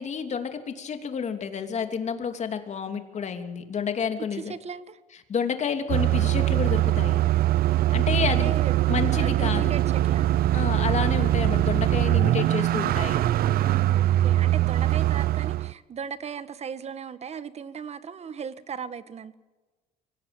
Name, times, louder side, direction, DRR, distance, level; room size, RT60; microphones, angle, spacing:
voice 1, 0.0-4.5 5.3-7.2 7.9-8.5 8.9-9.7 10.5-13.2, left 6 dB, 45° left, 7 dB, 2.8 m, -30 dB
voice 2, 4.2-5.0 8.3-8.8 9.1-10.3 13.9-19.3, right 7 dB, 40° right, 13 dB, 1.5 m, -37 dB
sound 1, 5.9-15.7, right 14 dB, 65° right, 0.7 m, -22 dB
24.0 x 18.0 x 8.9 m, 1.2 s
cardioid pair, 110°, 17 cm